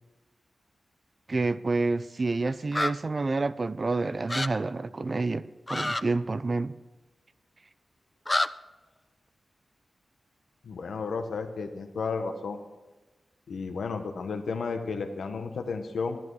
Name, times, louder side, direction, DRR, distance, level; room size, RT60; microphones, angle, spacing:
voice 1, 1.3-5.4 5.7-6.7, right 3 dB, 45° right, 15 dB, 0.4 m, -28 dB
sound 1, 2.7-2.9 4.3-4.5 5.7-6.0 8.2-8.5, left 2 dB, 20° left, 0.4 m, -27 dB
voice 2, 10.6-12.6 13.5-16.2, left 4 dB, 90° left, 6 dB, 1.1 m, -33 dB
11.0 x 11.0 x 4.8 m, 1.1 s
cardioid pair, 65°, 0 cm